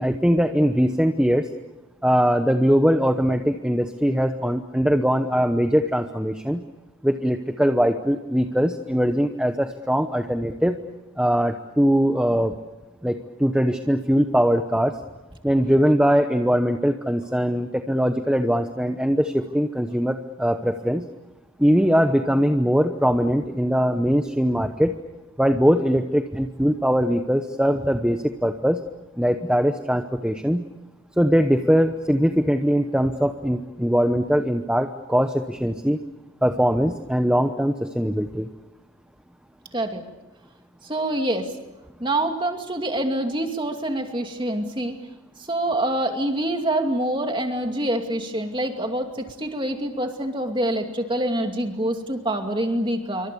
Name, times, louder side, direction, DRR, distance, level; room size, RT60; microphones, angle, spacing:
voice 1, 0.0-1.5 2.0-6.6 7.0-10.8 11.2-12.5 13.0-14.9 15.4-21.0 21.6-24.9 25.4-28.8 29.2-30.6 31.2-36.0 36.4-38.5, equal, 5° right, 6 dB, 0.8 m, -21 dB
voice 2, 39.7-40.0 40.8-41.5 42.0-45.0 45.4-53.3, right 1 dB, 25° right, 4 dB, 2.5 m, -26 dB
27.5 x 24.5 x 7.0 m, 1.1 s
head